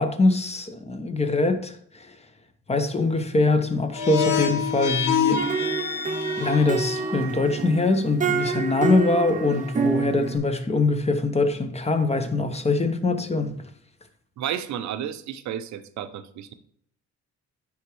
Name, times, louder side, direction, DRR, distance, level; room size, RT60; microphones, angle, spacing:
voice 1, 0.0-2.1 2.7-5.4 6.4-13.6, left 3 dB, 20° left, 0.8 m, -23 dB
sound 1, 3.9-7.2, left 7 dB, 70° left, 1.0 m, -26 dB
sound 2, 5.4-10.4, right 4 dB, 25° right, 0.8 m, -27 dB
voice 2, 14.4-16.5, right 10 dB, 70° right, 0.6 m, -32 dB
9.6 x 3.5 x 3.1 m
cardioid pair, 90°, 30 cm